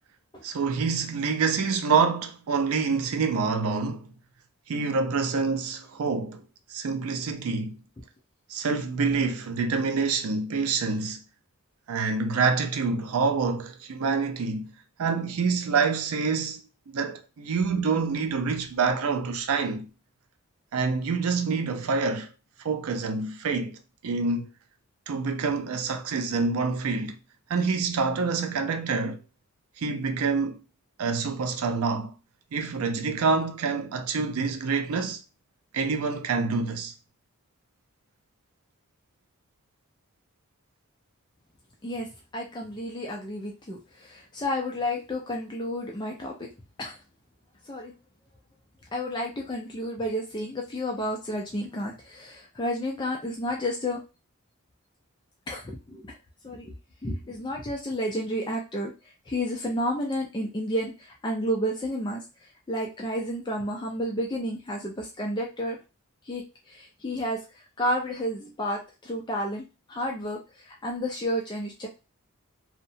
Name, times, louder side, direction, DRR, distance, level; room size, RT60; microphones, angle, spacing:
voice 1, 0.4-4.1 4.7-6.4 6.7-7.8 8.5-11.2 11.9-14.7 15.0-16.6 16.9-19.9 20.7-22.3 22.6-23.8 24.0-24.5 25.1-27.2 27.5-29.2 29.8-30.6 31.0-32.2 32.5-35.2 35.7-36.9, right 4 dB, 85° right, 0.4 m, -26 dB
voice 2, 42.3-46.4 46.8-47.0 47.7-47.9 48.9-54.0 55.5-56.2 56.4-56.7 57.0-58.9 59.3-65.8 66.3-71.9, equal, 20° left, 0.4 m, -31 dB
2.7 x 2.1 x 2.6 m
head